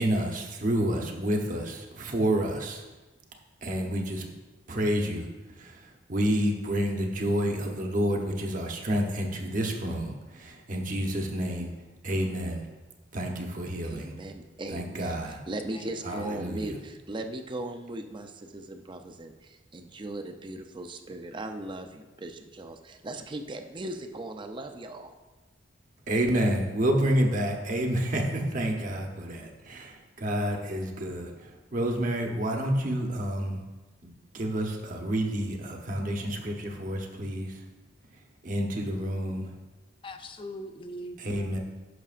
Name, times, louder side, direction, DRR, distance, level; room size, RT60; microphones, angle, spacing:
voice 1, 0.0-2.8 3.6-4.3 4.7-5.2 6.1-10.1 10.7-11.7 12.0-12.6 13.1-14.1 14.7-15.4 16.0-16.7 26.1-29.9 30.2-31.3 31.7-33.6 34.0-37.5 38.4-39.4 41.2-41.6, right 1 dB, 45° right, 2 dB, 1.0 m, -29 dB
voice 2, 13.8-25.1, right 2 dB, 25° right, 6 dB, 0.5 m, -38 dB
voice 3, 15.7-16.3 40.0-41.6, left 1 dB, 30° left, 7 dB, 0.5 m, -42 dB
11.0 x 6.0 x 2.5 m, 1.2 s
head